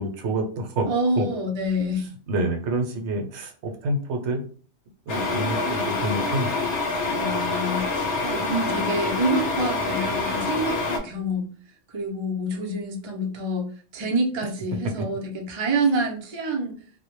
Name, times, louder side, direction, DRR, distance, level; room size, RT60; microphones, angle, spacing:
voice 1, 0.0-0.9 1.2-1.3 2.3-4.4 5.1-6.5, right 1 dB, 75° right, 3 dB, 0.9 m, -27 dB
voice 2, 0.9-2.1 7.2-11.5 11.9-13.7 13.9-16.8, right 1 dB, 45° right, 0 dB, 0.3 m, -27 dB
sound 1, 5.1-11.0, left 3 dB, 75° left, 0.9 m, -26 dB
2.1 x 2.1 x 2.9 m, 0.43 s
omnidirectional pair, 1.2 m